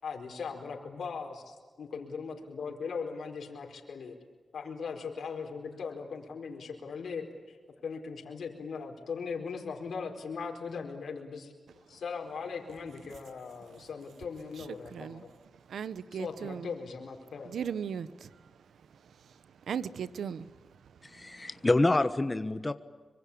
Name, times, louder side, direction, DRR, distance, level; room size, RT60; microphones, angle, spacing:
voice 1, 0.0-4.2 4.5-7.6 7.8-11.5 11.9-15.3 16.1-17.5, left 5 dB, 80° left, 4.5 m, -39 dB
voice 2, 15.7-16.6 17.5-18.1 19.7-20.5, right 7 dB, 85° right, 1.0 m, -36 dB
voice 3, 21.0-22.7, left 2 dB, 25° left, 1.2 m, -27 dB
25.5 x 25.0 x 8.7 m
cardioid pair, 65°, 0 cm